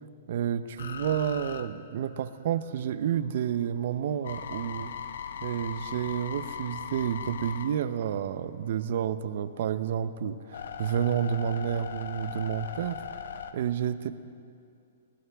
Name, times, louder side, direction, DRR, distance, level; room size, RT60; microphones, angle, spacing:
voice 1, 0.3-4.9 5.4-13.0 13.5-14.1, right 9 dB, 50° right, 13 dB, 0.6 m, -30 dB
sound 1, 0.8-2.7 3.1-8.7 9.3-13.5, left 7 dB, 80° left, 1.0 m, -39 dB
20.5 x 20.0 x 3.5 m, 2.5 s
hypercardioid pair, 175°, 0 cm